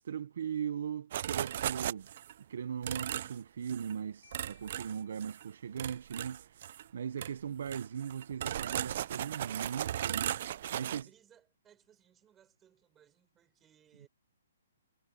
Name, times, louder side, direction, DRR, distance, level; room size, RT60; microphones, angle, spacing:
voice 1, 0.0-2.1 2.5-10.4 10.7-11.1, right 8 dB, 50° right, 0.7 m, -39 dB
sound 1, 1.1-2.3 2.8-3.4 3.7-3.9 4.3-5.4 5.8-6.9 7.2-7.3 7.7-11.0, right 11 dB, 35° right, 0.3 m, -37 dB
Marimba xylophone, 4.2-6.0, left 7 dB, 60° left, 4.1 m, -65 dB
voice 2, 10.8-14.1, right 9 dB, 10° right, 6.6 m, -64 dB
hypercardioid pair, 175°, 0 cm